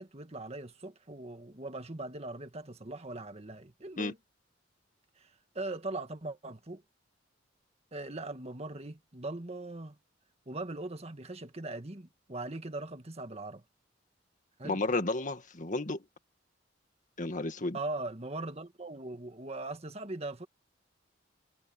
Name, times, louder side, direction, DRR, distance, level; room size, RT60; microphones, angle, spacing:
voice 1, 0.0-4.2 5.2-6.8 7.9-10.0 10.5-13.6 14.6-14.8 17.7-20.5, right 2 dB, 35° right, 1.7 m, -40 dB
voice 2, 14.6-16.0 17.2-17.8, left 2 dB, 45° left, 1.9 m, -32 dB
head